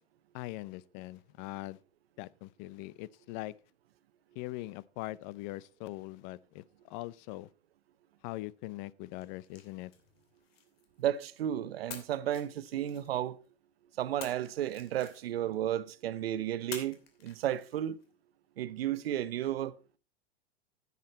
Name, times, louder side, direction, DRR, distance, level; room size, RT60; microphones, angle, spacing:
voice 1, 0.3-1.8 2.2-3.5 4.3-7.5 8.2-9.9, left 18 dB, 50° left, 0.6 m, -42 dB
sound 1, 9.1-11.4 11.9-13.5 14.2-15.6 16.7-18.0, left 7 dB, 80° left, 2.7 m, -50 dB
voice 2, 11.0-13.4 14.0-18.0 18.6-19.7, right 11 dB, 85° right, 0.8 m, -33 dB
10.5 x 8.4 x 4.1 m
hypercardioid pair, 115°, 30 cm